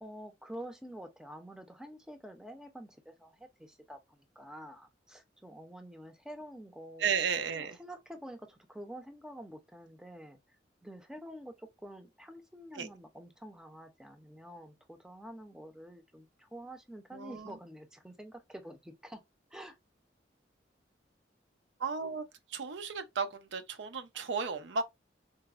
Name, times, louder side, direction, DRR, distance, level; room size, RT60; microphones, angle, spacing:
voice 1, 0.0-7.1 7.5-10.4 10.8-19.2 19.5-19.8 24.1-24.2, equal, 5° right, 0.5 m, -48 dB
voice 2, 7.0-7.8 12.8-12.9 17.1-17.5 21.8-22.2 22.5-24.8, right 5 dB, 80° right, 0.5 m, -34 dB
3.9 x 2.0 x 2.3 m
head